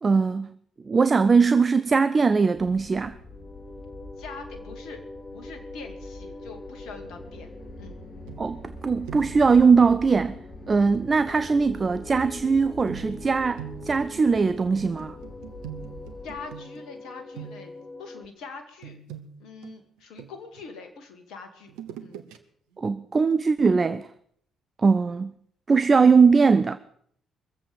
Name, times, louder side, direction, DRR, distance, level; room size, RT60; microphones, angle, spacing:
voice 1, 0.0-0.5 0.9-3.2 8.4-10.4 10.7-15.2 22.8-24.1 24.8-25.3 25.7-26.8, right 5 dB, 35° right, 0.6 m, -20 dB
sound 1, 2.5-16.4, left 1 dB, 45° left, 3.8 m, -45 dB
sound 2, 3.3-18.3, left 2 dB, 20° left, 1.4 m, -44 dB
voice 2, 4.2-5.0 5.3-7.5 7.8-8.0 16.2-17.7 18.0-19.0 19.4-21.7 22.0-22.2, left 4 dB, 65° left, 2.1 m, -43 dB
sound 3, 8.3-8.8 9.0-9.5 10.9-11.1 12.9-17.0 17.3-17.9 18.8-20.6 21.7-22.4 22.8-22.9, right 11 dB, 70° right, 1.0 m, -43 dB
22.5 x 7.7 x 6.7 m
hypercardioid pair, 45°, 0 cm